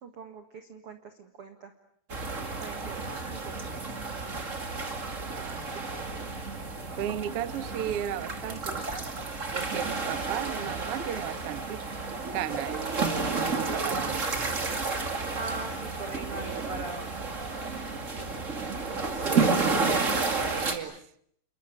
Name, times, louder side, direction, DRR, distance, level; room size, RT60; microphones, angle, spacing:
voice 1, 0.0-1.7 2.6-3.9 15.3-17.2, right 3 dB, 50° right, 6 dB, 1.9 m, -41 dB
sound 1, 2.1-20.8, right 4 dB, 25° right, 1.9 m, -31 dB
voice 2, 5.3-6.0 7.0-8.8 9.5-11.8 12.3-14.6 19.1-21.0, right 11 dB, 70° right, 12 dB, 1.4 m, -36 dB
29.0 x 22.0 x 8.5 m, 0.66 s
omnidirectional pair, 4.6 m